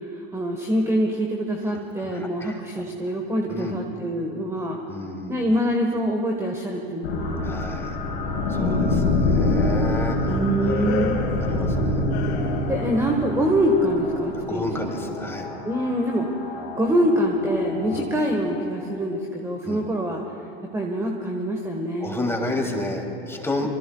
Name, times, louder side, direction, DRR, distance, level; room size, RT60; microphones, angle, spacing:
voice 1, 0.0-4.8 5.3-7.4 8.5-9.3 10.3-11.2 12.7-14.9 15.6-16.3 16.8-20.2 20.7-22.2, equal, 10° right, 1 dB, 1.4 m, -25 dB
voice 2, 1.7-2.6 3.5-3.8 4.9-5.4 7.4-8.0 8.5-10.9 11.4-12.0 14.5-15.5 17.9-18.1 19.6-19.8 22.0-23.7, left 2 dB, 10° left, 1 dB, 2.8 m, -31 dB
sound 1, 7.0-19.0, left 2 dB, 85° left, 4.0 m, -27 dB
sound 2, 8.3-9.1 9.4-13.0 13.3-13.8, left 7 dB, 55° left, 2.2 m, -35 dB
25.5 x 24.0 x 2.3 m, 2.5 s
hypercardioid pair, 105°, 31 cm